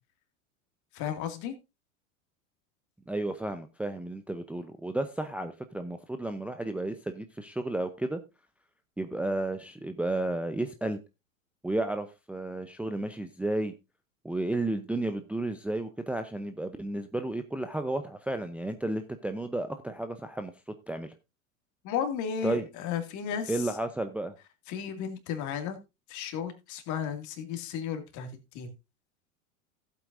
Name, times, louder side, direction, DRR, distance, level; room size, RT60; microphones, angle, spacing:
voice 1, 0.9-1.5 21.8-23.7 24.7-25.8 26.1-28.7, left 8 dB, 45° left, 2.3 m, -34 dB
voice 2, 3.1-8.2 9.0-11.0 11.6-13.7 14.2-20.5 20.9-21.1 22.4-22.6 23.5-24.3, right 2 dB, 5° right, 0.6 m, -32 dB
15.0 x 8.3 x 2.6 m
hypercardioid pair, 90°, 41 cm